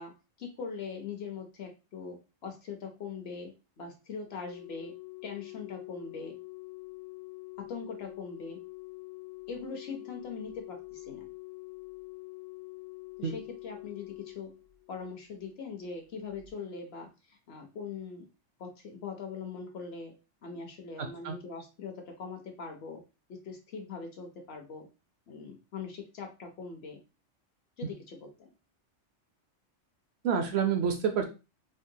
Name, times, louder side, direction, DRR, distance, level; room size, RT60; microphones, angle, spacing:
voice 1, 0.0-4.9 5.2-6.4 7.6-8.6 9.5-11.3 13.2-14.5 14.9-18.3 18.6-20.1 20.4-23.0 23.3-24.9 25.3-27.0 27.8-28.5, left 5 dB, 60° left, 3 dB, 0.9 m, -41 dB
Organ, 4.3-15.2 16.3-16.5, left 24 dB, 80° left, 1.3 m, -46 dB
voice 2, 21.0-21.4 30.2-31.2, right 7 dB, 65° right, 5 dB, 0.8 m, -28 dB
3.7 x 2.1 x 2.7 m, 0.29 s
omnidirectional pair, 1.3 m